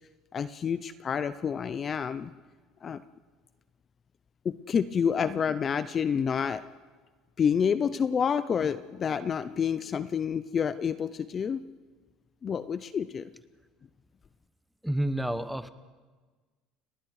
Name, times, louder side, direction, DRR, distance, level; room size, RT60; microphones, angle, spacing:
voice 1, 0.3-2.3 2.8-3.0 4.4-6.6 7.4-11.6 12.4-13.2, left 7 dB, 30° left, 13 dB, 0.6 m, -28 dB
voice 2, 14.8-15.7, right 1 dB, ahead, 12 dB, 0.9 m, -29 dB
29.5 x 20.5 x 4.8 m, 1.4 s
cardioid pair, 140°, 0 cm